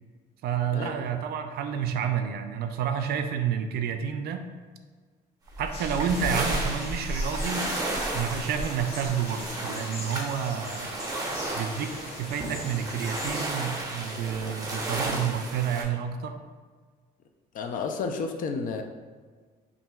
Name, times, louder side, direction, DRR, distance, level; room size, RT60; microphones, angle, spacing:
voice 1, 0.4-4.5 5.6-7.7 8.1-10.9 11.5-16.4, right 7 dB, 65° right, 7 dB, 0.4 m, -29 dB
sound 1, 5.5-15.8, right 2 dB, 20° right, 0.8 m, -33 dB
sound 2, 5.7-13.5, left 1 dB, 35° left, 1.2 m, -42 dB
voice 2, 17.5-18.8, left 4 dB, 55° left, 5 dB, 0.5 m, -31 dB
5.6 x 2.6 x 2.3 m, 1.5 s
cardioid pair, 110°, 17 cm